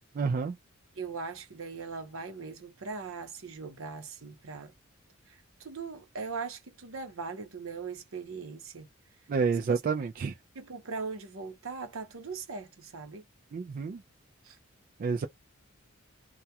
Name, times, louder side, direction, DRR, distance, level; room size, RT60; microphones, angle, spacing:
voice 1, 0.2-0.6 9.3-10.3 13.5-14.0 15.0-15.3, right 5 dB, 40° right, 0.3 m, -29 dB
voice 2, 0.9-4.7 5.3-8.9 9.5-9.8 10.5-13.2 14.4-14.6, right 4 dB, 70° right, 0.8 m, -40 dB
2.3 x 2.2 x 2.7 m
head